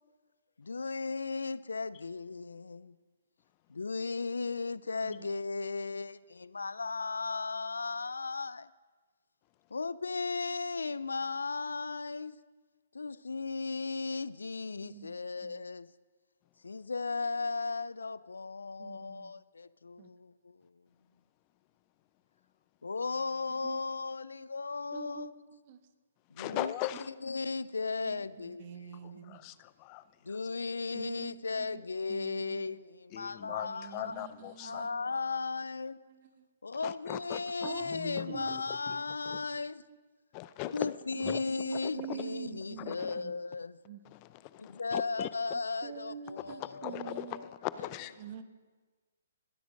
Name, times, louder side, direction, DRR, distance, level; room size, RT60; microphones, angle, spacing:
voice 1, 0.6-3.0 3.7-8.7 9.7-12.4 12.9-15.9 16.6-20.6 22.8-25.3 26.3-29.3 30.2-34.2 34.6-36.0 36.6-39.8 40.6-43.8 44.6-47.5 47.8-47.9, left 4 dB, 85° left, 0.4 m, -36 dB
voice 2, 14.8-15.1 15.4-15.6 18.8-19.3 20.0-20.1 23.6-23.8 24.9-25.8 28.0-29.4 30.9-31.8 32.1-32.8 33.6-35.0 36.1-36.4 37.6-38.6 39.3-40.0 41.1-43.0 43.2-43.3 43.8-44.0 45.5-47.5 48.2-48.4, right 9 dB, 40° right, 1.1 m, -46 dB
voice 3, 26.4-27.1 29.3-30.0 33.1-34.8 36.8-38.4 38.9-39.0 39.3-39.4 40.3-41.4 41.7-42.2 42.8-43.2 44.1-45.3 46.8-48.1, left 16 dB, 30° left, 0.6 m, -40 dB
21.5 x 9.4 x 5.2 m
hypercardioid pair, 135°, 0 cm